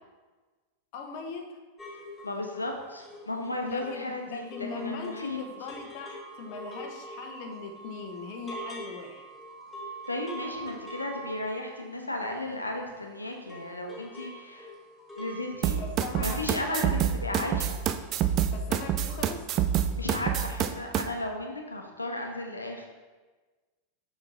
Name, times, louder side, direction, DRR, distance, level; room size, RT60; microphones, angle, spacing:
voice 1, 0.9-1.6 3.6-9.2 15.7-16.9 18.5-19.5, left 4 dB, 45° left, 3 dB, 0.8 m, -40 dB
sound 1, 1.8-13.1 13.3-17.1 17.3-17.7 18.0-18.1, right 1 dB, 10° left, 1.8 m, -44 dB
voice 2, 2.2-5.4 10.1-14.7 15.2-15.8 16.2-17.8 19.9-22.9, left 2 dB, 80° left, 2 dB, 0.9 m, -34 dB
sound 2, 15.6-21.0, right 10 dB, 35° right, 0.4 m, -27 dB
6.7 x 5.8 x 3.5 m, 1.3 s
figure-of-eight pair, 90°, 0 cm